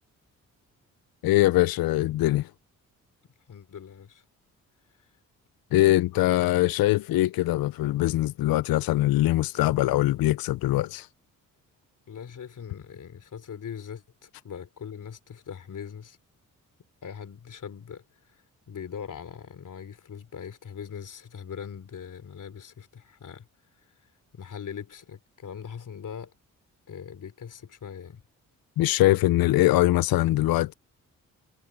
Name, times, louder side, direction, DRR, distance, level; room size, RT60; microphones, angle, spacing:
voice 1, 1.2-2.5 5.7-11.1 28.8-30.7, left 16 dB, 80° left, 0.6 m, -22 dB
voice 2, 3.5-4.2 5.0-5.1 12.1-16.2 17.0-23.5 23.8-23.9 24.3-26.3 26.9-28.2, left 7 dB, 60° left, 3.4 m, -41 dB
supercardioid pair, 60°, 35 cm